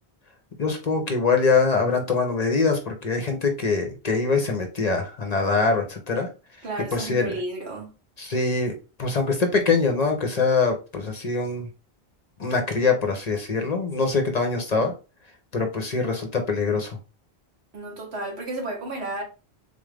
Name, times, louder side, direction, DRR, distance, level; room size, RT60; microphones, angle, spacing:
voice 1, 0.6-6.3 6.9-7.3 8.2-8.7 9.0-11.7 12.4-14.9 15.5-17.0, left 4 dB, 45° left, 0.7 m, -23 dB
voice 2, 6.6-7.9 17.7-19.2, right 2 dB, 85° right, 1.6 m, -32 dB
3.8 x 2.4 x 3.3 m
omnidirectional pair, 1.1 m